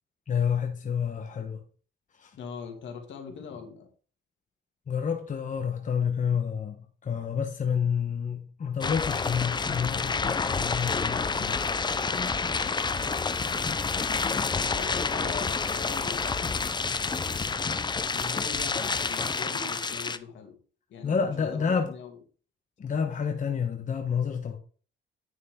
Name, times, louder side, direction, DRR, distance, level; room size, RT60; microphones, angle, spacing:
voice 1, 0.3-1.6 2.2-2.4 4.9-11.6 12.1-12.4 21.0-21.9 22.8-24.6, left 7 dB, 40° left, 1.2 m, -29 dB
voice 2, 2.4-3.9 14.5-16.5 18.1-20.6 20.9-22.2, left 6 dB, 70° left, 2.1 m, -42 dB
sound 1, 8.8-20.2, left 4 dB, 20° left, 0.6 m, -29 dB
9.4 x 6.3 x 3.7 m
cardioid pair, 90°, 20 cm